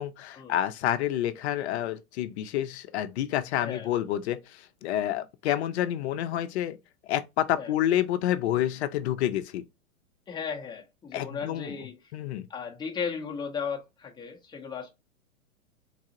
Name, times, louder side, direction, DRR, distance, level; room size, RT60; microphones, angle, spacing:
voice 1, 0.0-6.8 7.0-9.6 11.1-11.8 12.1-12.5, left 12 dB, 50° left, 0.6 m, -29 dB
voice 2, 3.6-3.9 7.6-7.7 10.3-12.0 12.5-14.9, left 6 dB, 10° left, 0.7 m, -35 dB
4.0 x 2.3 x 2.7 m
hypercardioid pair, 115°, 42 cm